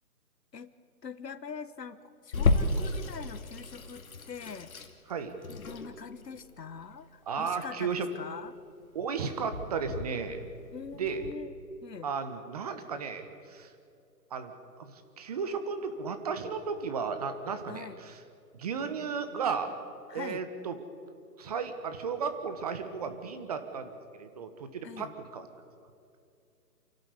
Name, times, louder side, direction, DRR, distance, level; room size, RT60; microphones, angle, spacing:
voice 1, 1.0-4.7 5.6-8.6 10.7-11.5 11.8-12.1 17.7-18.0 20.1-20.4 24.8-25.1, left 6 dB, 75° left, 14 dB, 1.3 m, -43 dB
Water tap faucet / Sink (filling or washing), 2.3-11.3, left 2 dB, 55° left, 2.2 m, -33 dB
voice 2, 7.3-8.1 8.9-10.4 10.9-11.2 12.0-13.7 14.3-14.5 14.8-18.2 18.5-19.7 20.1-20.8 21.4-25.5, right 5 dB, 25° right, 9 dB, 1.3 m, -34 dB
28.5 x 12.0 x 8.3 m, 2.4 s
figure-of-eight pair, 155°, 49 cm